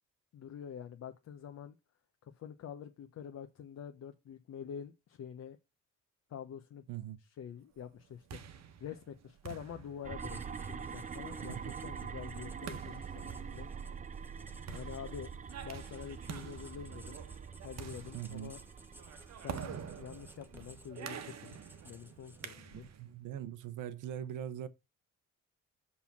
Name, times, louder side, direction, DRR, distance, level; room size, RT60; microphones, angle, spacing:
voice 1, 0.3-1.8 2.2-5.6 6.3-6.8 7.2-8.4 8.8-13.7 14.7-15.3 15.6-17.2 17.6-18.6 19.3-21.6 21.8-22.9, left 8 dB, 60° left, 0.8 m, -47 dB
voice 2, 6.9-7.2 11.5-11.7 18.1-18.5 22.7-24.7, right 10 dB, 85° right, 0.8 m, -41 dB
sound 1, 7.9-23.1, right 8 dB, 60° right, 1.1 m, -48 dB
sound 2, 10.0-20.8, right 6 dB, 25° right, 0.5 m, -45 dB
Writing, 10.2-22.8, right 1 dB, 5° right, 1.0 m, -59 dB
5.5 x 4.3 x 5.9 m
cardioid pair, 90°, 30 cm